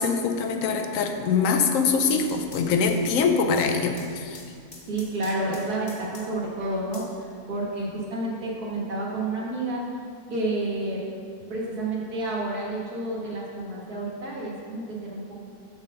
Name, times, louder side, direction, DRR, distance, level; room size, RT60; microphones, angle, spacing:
voice 1, 0.0-4.4, left 5 dB, 65° left, 5 dB, 1.0 m, -23 dB
sound 1, 2.0-6.5 6.9-7.9, left 3 dB, 50° left, 1.1 m, -47 dB
voice 2, 4.9-9.8 10.3-11.0 11.5-15.4, right 2 dB, 90° right, -4 dB, 2.0 m, -30 dB
7.2 x 4.3 x 6.4 m, 2.2 s
omnidirectional pair, 1.6 m